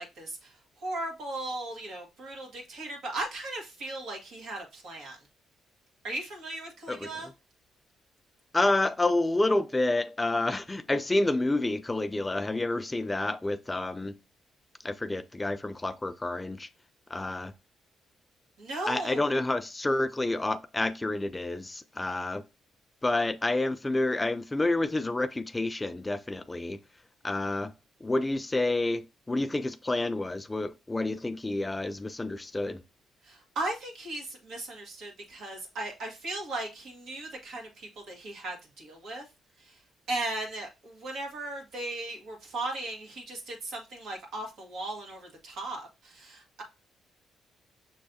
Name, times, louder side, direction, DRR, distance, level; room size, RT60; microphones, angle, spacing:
voice 1, 0.0-5.2 6.0-7.3 18.6-19.3 33.2-39.2 39.6-39.8 40.1-46.6, right 2 dB, 75° right, 1.7 m, -37 dB
voice 2, 8.5-14.1 14.8-16.7 17.1-17.5 18.9-22.4 23.0-26.8 27.2-27.7 28.0-32.8, left 2 dB, 15° left, 0.3 m, -29 dB
6.4 x 3.1 x 2.6 m
cardioid pair, 90°, 0 cm